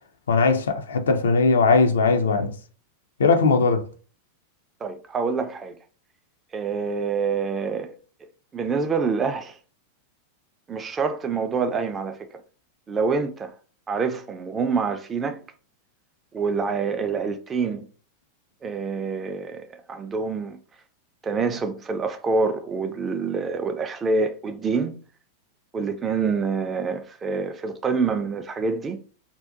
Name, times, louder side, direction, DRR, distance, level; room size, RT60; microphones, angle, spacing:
voice 1, 0.3-2.6 3.2-3.8, left 4 dB, 65° left, 0.3 m, -19 dB
voice 2, 4.8-5.8 6.5-7.9 8.5-9.6 10.7-12.4 12.9-13.5 13.9-15.4 16.3-17.9 18.6-20.6 21.2-25.0 25.7-29.0, right 4 dB, 20° right, 0.3 m, -26 dB
2.6 x 2.1 x 2.4 m
figure-of-eight pair, 90°, 0 cm